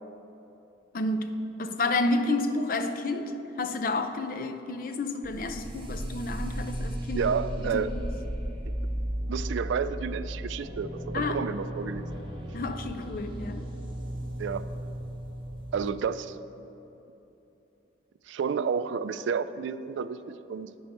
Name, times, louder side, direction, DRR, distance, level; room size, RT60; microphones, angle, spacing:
voice 1, 0.9-3.3 3.6-7.3 7.6-8.1 11.1-11.4 12.5-13.7, left 2 dB, 50° left, 7 dB, 0.4 m, -30 dB
sound 1, 5.2-15.9, equal, 25° right, 0.8 m, -35 dB
voice 2, 7.1-7.9 8.6-8.7 9.3-12.1 14.4-14.6 15.7-16.4 18.3-20.7, right 6 dB, 80° right, 13 dB, 0.3 m, -30 dB
9.6 x 5.3 x 4.4 m, 2.9 s
head